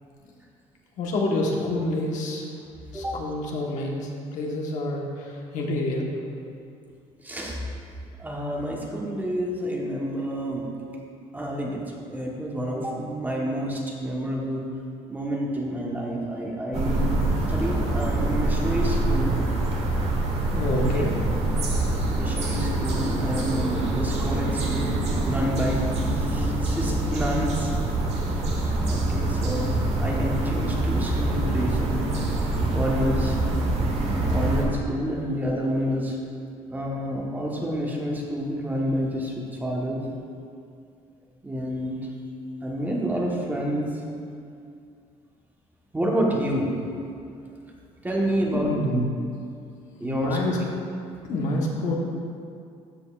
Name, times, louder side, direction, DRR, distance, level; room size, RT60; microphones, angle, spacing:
voice 1, 1.0-2.4 2.9-6.1 20.5-21.2 48.5-49.0 50.0-50.6 51.3-51.9, left 1 dB, 75° left, -1 dB, 1.2 m, -27 dB
voice 2, 7.2-7.6 8.2-10.7 11.3-11.8 12.1-14.7 15.1-17.1 17.5-19.4 22.1-27.7 28.8-32.2 32.7-33.4 33.9-36.2 36.7-39.3 39.6-40.0 41.4-42.0 42.6-44.0 45.9-46.7 48.0-48.8 50.0-50.4, equal, 15° right, -2 dB, 1.2 m, -28 dB
sound 1, 16.7-34.6, right 2 dB, 55° right, 1.3 m, -25 dB
13.5 x 5.3 x 2.4 m, 2.4 s
cardioid pair, 105°, 13 cm